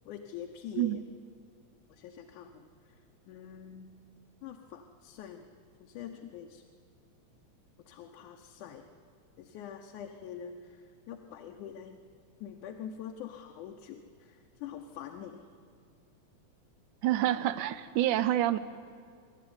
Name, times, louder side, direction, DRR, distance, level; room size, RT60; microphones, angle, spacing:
voice 1, 0.1-1.0 1.9-4.0 4.4-5.4 5.8-6.6 7.8-8.9 9.4-12.0 12.4-15.5, left 8 dB, 80° left, 3 dB, 2.5 m, -45 dB
voice 2, 17.0-18.6, right 13 dB, 85° right, 14 dB, 2.3 m, -27 dB
26.0 x 12.0 x 9.5 m, 2.2 s
omnidirectional pair, 3.5 m